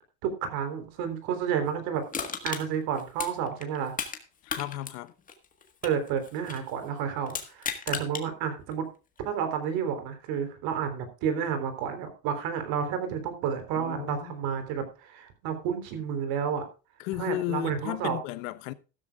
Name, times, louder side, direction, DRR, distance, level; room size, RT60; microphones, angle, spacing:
voice 1, 0.2-2.0 2.4-3.9 5.8-8.9 9.2-16.6 17.2-18.2, right 7 dB, 60° right, 3.6 m, -31 dB
Crushing, 2.1-4.2 4.5-6.7 7.3-8.2 8.7-8.8, left 6 dB, 20° left, 1.6 m, -35 dB
voice 2, 4.4-5.1 13.8-14.4 17.0-18.7, left 16 dB, 75° left, 1.1 m, -34 dB
15.0 x 13.0 x 2.4 m
cardioid pair, 160°, 40 cm